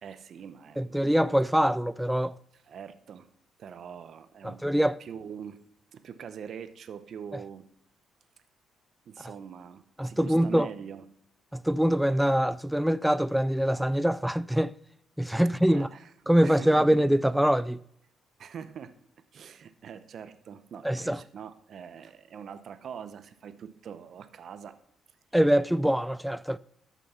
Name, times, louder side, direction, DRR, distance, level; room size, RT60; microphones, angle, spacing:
voice 1, 0.0-1.0 2.5-3.3 3.6-4.6 5.0-5.6 5.9-7.7 9.1-11.1 15.7-16.1 16.4-16.9 18.4-19.0 19.3-24.8, right 7 dB, 60° right, 0.8 m, -43 dB
voice 2, 0.8-2.3 4.4-5.0 10.0-10.7 11.5-14.7 15.2-15.9 16.3-17.8 20.8-21.2 25.3-26.6, equal, 5° right, 0.3 m, -24 dB
12.5 x 6.2 x 5.6 m
cardioid pair, 90°, 0 cm